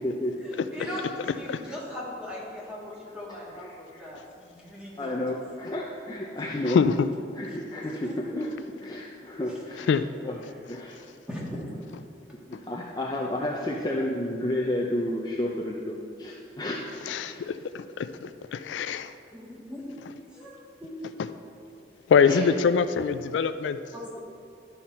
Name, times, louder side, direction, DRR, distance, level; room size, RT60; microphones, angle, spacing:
voice 1, 0.4-5.2 7.8-8.1 11.3-11.6 13.2-13.3 19.3-20.0 20.3-21.1 23.9-24.2, left 1 dB, 5° right, -5 dB, 1.6 m, -39 dB
voice 2, 3.6-4.1 5.0-6.8 7.3-8.5 8.8-9.9 10.2-10.4 10.7-11.0 12.5-16.8 17.2-17.4 18.5-18.6 22.3-22.4, left 1 dB, 20° left, -3 dB, 0.5 m, -31 dB
voice 3, 6.7-7.1 9.8-10.1 17.1-19.1 22.1-23.8, left 6 dB, 80° left, 12 dB, 0.3 m, -24 dB
11.5 x 5.7 x 4.3 m, 2.5 s
head